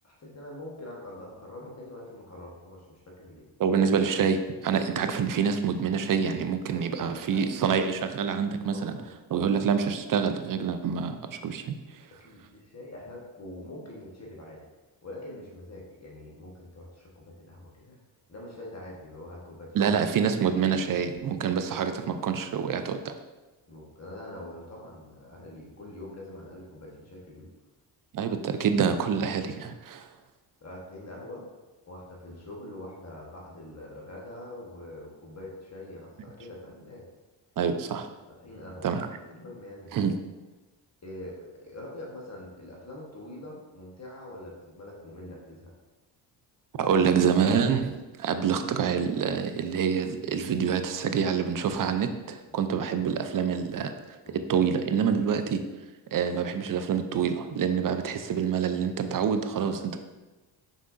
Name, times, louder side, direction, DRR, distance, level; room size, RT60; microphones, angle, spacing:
voice 1, 0.0-3.5 6.7-7.4 8.7-9.1 12.2-14.6 15.0-18.0 18.3-19.9 23.7-27.5 30.6-31.5 31.9-37.1 38.3-39.0 39.3-39.9 41.0-45.7 52.5-52.7 54.2-54.5 59.1-60.0, left 1 dB, 35° left, -3 dB, 1.2 m, -44 dB
voice 2, 3.6-9.0 9.3-11.8 19.7-23.1 28.1-30.1 37.6-38.1 38.8-39.1 39.9-40.2 46.8-53.9 54.3-55.6 56.1-60.0, right 7 dB, 45° right, 8 dB, 0.5 m, -26 dB
5.6 x 3.6 x 2.5 m, 1.2 s
cardioid pair, 70°, 47 cm